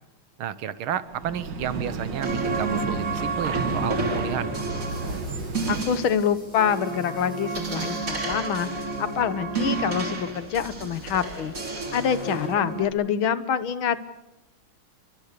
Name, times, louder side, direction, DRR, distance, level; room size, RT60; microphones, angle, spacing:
voice 1, 0.4-4.5, right 9 dB, 75° right, 14 dB, 2.0 m, -31 dB
sound 1, 1.1-6.1, right 4 dB, 55° right, 2.4 m, -33 dB
sound 2, 2.2-12.9, right 3 dB, 40° right, 3.4 m, -30 dB
sound 3, 4.7-8.0 9.1-12.5, equal, 25° left, 6.7 m, -49 dB
voice 2, 5.7-8.7 9.0-11.5 11.9-14.0, left 8 dB, 70° left, 13 dB, 2.0 m, -26 dB
29.5 x 23.0 x 6.8 m, 0.90 s
omnidirectional pair, 2.3 m